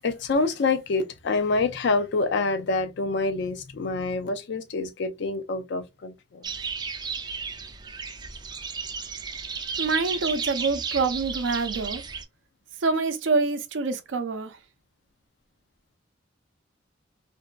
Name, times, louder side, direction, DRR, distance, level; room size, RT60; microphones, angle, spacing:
voice 1, 0.0-6.4, left 3 dB, 65° left, 0.5 m, -26 dB
sound 1, 6.4-12.2, right 5 dB, 25° right, 0.3 m, -33 dB
voice 2, 9.8-12.0 12.8-14.6, right 4 dB, 90° right, 0.5 m, -26 dB
2.6 x 2.2 x 2.3 m
head